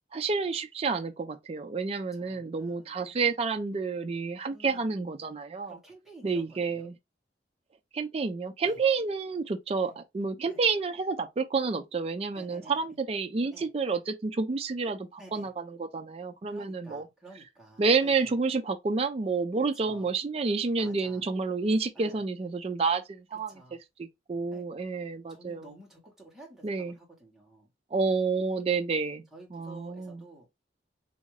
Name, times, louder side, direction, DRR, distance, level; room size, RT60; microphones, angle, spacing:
voice 1, 0.1-5.8 6.2-6.9 7.9-17.0 17.8-23.6 24.0-25.6 26.6-26.9 27.9-29.2 29.5-30.2, right 4 dB, 35° right, 0.4 m, -29 dB
voice 2, 2.1-3.2 4.5-5.0 5.6-6.9 8.6-8.8 9.8-9.9 10.5-10.6 12.3-12.9 13.5-13.7 15.2-15.5 16.5-18.4 19.6-20.1 20.7-21.3 21.9-22.2 23.5-23.8 24.5-24.7 25.3-27.7 29.3-30.5, right 2 dB, ahead, 1.1 m, -52 dB
3.5 x 2.5 x 3.0 m
head